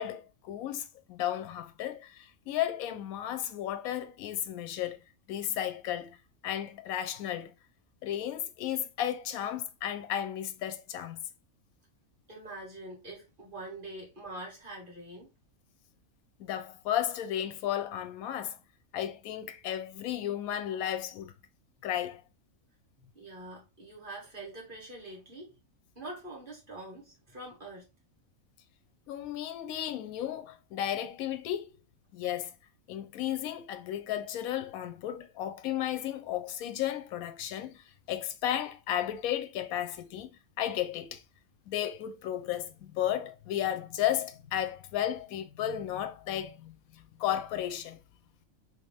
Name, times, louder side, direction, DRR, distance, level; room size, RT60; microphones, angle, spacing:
voice 1, 0.0-5.0 5.3-6.2 6.4-7.5 8.0-11.2 16.4-18.6 18.9-21.3 21.8-22.2 29.1-31.8 32.1-32.5 32.9-40.3 40.6-41.2 41.7-46.7 47.2-48.0, left 11 dB, 85° left, 1.0 m, -34 dB
voice 2, 12.3-15.3 23.0-25.5 25.9-27.9, right 2 dB, 40° right, 1.7 m, -44 dB
3.2 x 2.9 x 3.3 m
omnidirectional pair, 1.5 m